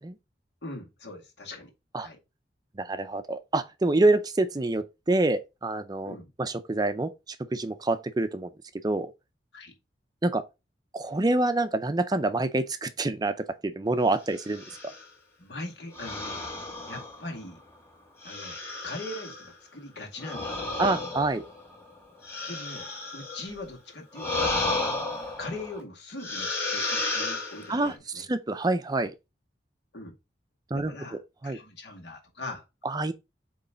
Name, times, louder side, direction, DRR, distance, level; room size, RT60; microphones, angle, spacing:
voice 1, 0.6-1.7 2.0-2.2 6.0-6.3 9.5-9.7 15.4-16.5 16.8-17.6 18.2-18.6 18.8-21.0 22.5-22.9 23.1-24.8 25.4-28.3 29.9-30.1 30.7-32.7, left 2 dB, 75° left, 2.2 m, -41 dB
voice 2, 2.8-7.1 7.5-8.5 8.8-9.1 10.2-10.4 10.9-13.3 13.6-14.6 20.8-21.4 27.7-29.1 30.7-30.9 31.4-31.6 32.8-33.1, right 2 dB, 25° right, 0.5 m, -26 dB
sound 1, 14.4-15.1 16.0-17.6 18.2-19.5 20.2-23.6 24.1-25.8 26.2-27.9, left 2 dB, 15° left, 1.7 m, -33 dB
8.2 x 3.2 x 3.8 m
head